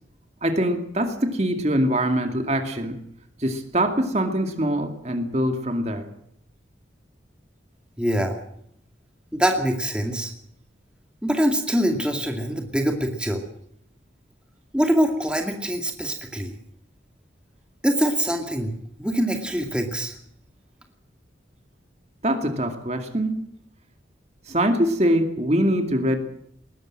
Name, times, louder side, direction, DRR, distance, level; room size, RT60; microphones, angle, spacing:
voice 1, 0.4-3.0 3.4-6.1 22.2-23.4 24.5-26.2, right 1 dB, 35° right, 6 dB, 2.3 m, -23 dB
voice 2, 8.0-8.3 9.3-10.3 11.2-13.4 14.7-16.5 17.8-18.7 19.0-20.1, equal, 5° right, 3 dB, 2.4 m, -24 dB
20.5 x 18.0 x 7.6 m, 0.70 s
head